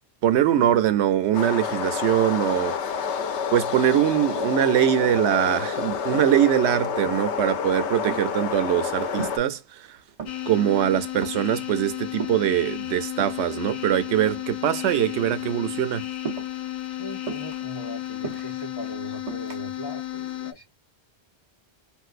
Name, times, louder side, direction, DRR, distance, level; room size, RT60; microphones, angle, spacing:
voice 1, 0.2-2.8 3.5-10.0 10.5-16.1, right 11 dB, 90° right, 0.9 m, -22 dB
sound 1, 1.3-9.4, left 6 dB, 90° left, 0.9 m, -28 dB
sound 2, 6.1-6.6 7.1-7.5 7.8-9.6 9.9-10.6 11.0-11.6 12.2-13.5 14.1-14.9 15.2-15.5 16.2-16.7 17.3-18.6 19.3-19.6, right 6 dB, 35° right, 0.7 m, -37 dB
sound 3, 10.3-20.5, left 14 dB, 55° left, 0.5 m, -33 dB
voice 2, 16.9-20.6, right 1 dB, 20° left, 1.1 m, -40 dB
3.6 x 2.6 x 2.4 m
omnidirectional pair, 1.1 m